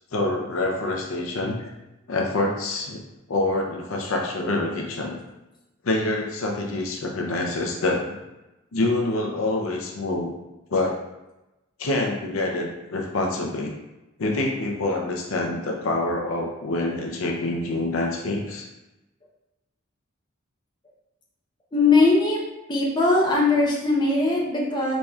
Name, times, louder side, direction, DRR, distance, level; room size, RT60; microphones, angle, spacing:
voice 1, 0.1-1.7 2.1-3.0 3.3-5.2 5.8-8.1 8.7-10.3 10.7-11.0 11.8-13.7 14.2-18.7, left 2 dB, 75° left, 0 dB, 0.5 m, -26 dB
voice 2, 21.7-22.4 22.7-25.0, left 3 dB, 20° left, -3 dB, 0.7 m, -20 dB
4.1 x 3.1 x 2.3 m, 1.0 s
head